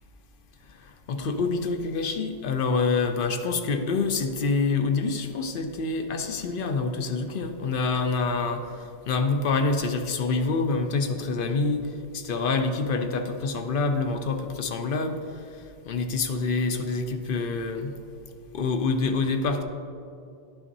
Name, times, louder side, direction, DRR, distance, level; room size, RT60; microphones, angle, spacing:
voice 1, 1.1-8.7 9.1-11.9 12.1-15.2 15.9-17.9 18.5-19.6, left 4 dB, 60° left, 6 dB, 0.7 m, -26 dB
11.0 x 5.8 x 2.7 m, 2.5 s
omnidirectional pair, 1.1 m